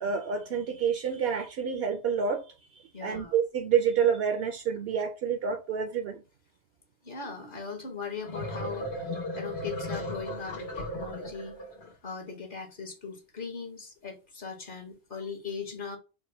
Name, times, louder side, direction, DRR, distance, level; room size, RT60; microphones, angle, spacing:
voice 1, 0.0-2.5 2.7-6.2, right 7 dB, 75° right, 0.8 m, -28 dB
voice 2, 2.9-3.3 7.0-11.6 12.0-16.0, left 5 dB, 55° left, 1.1 m, -39 dB
sound 1, 8.0-11.9, left 1 dB, 85° left, 1.3 m, -36 dB
3.5 x 2.1 x 4.1 m
omnidirectional pair, 1.0 m